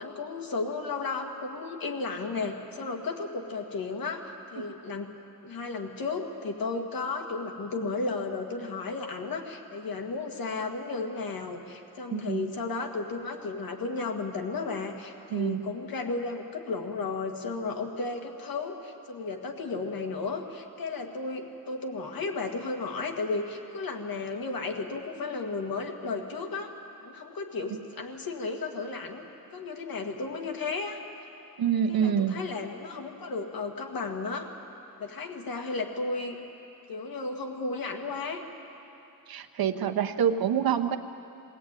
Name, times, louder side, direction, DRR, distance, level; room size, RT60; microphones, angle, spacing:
voice 1, 0.0-5.1 5.4-26.7 27.0-29.2 29.5-31.0 31.9-34.5 35.0-36.4 36.9-38.4, left 3 dB, 70° left, 2 dB, 2.0 m, -34 dB
voice 2, 12.1-12.5 15.3-15.6 31.6-32.4 39.3-41.0, right 8 dB, 75° right, 6 dB, 1.1 m, -26 dB
21.5 x 17.5 x 9.1 m, 2.9 s
wide cardioid pair, 145°, 36 cm